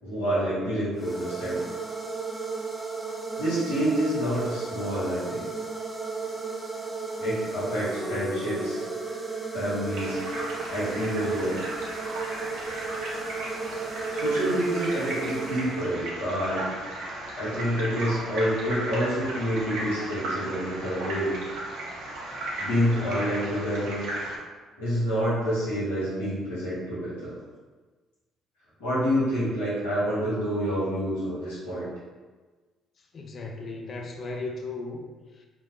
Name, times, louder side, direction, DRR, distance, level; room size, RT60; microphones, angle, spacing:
voice 1, 0.0-1.6 3.4-5.5 7.2-8.8 9.5-10.2 10.7-11.6 14.1-16.6 17.4-21.3 22.6-24.1 24.8-27.3 28.8-31.9, equal, 85° left, -12 dB, 1.0 m, -28 dB
sound 1, 1.0-16.2, right 4 dB, 10° right, 0.5 m, -34 dB
sound 2, 9.9-24.4, right 1 dB, 70° right, 0.6 m, -35 dB
voice 2, 33.1-35.1 35.4-35.5, left 3 dB, 50° left, 2 dB, 0.3 m, -36 dB
2.5 x 2.0 x 3.1 m, 1.3 s
hypercardioid pair, 55°, 0 cm